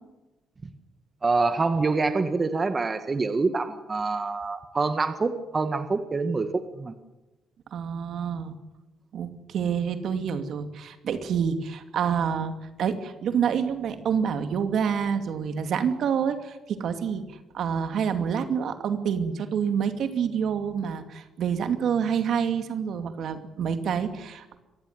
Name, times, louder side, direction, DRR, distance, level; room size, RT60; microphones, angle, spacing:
voice 1, 1.2-6.9, right 3 dB, 30° right, 9 dB, 1.7 m, -26 dB
voice 2, 7.7-8.6 9.1-17.2 17.5-24.6, right 7 dB, 70° right, 8 dB, 2.5 m, -27 dB
26.5 x 15.0 x 9.6 m, 1.0 s
cardioid pair, 90°, 0 cm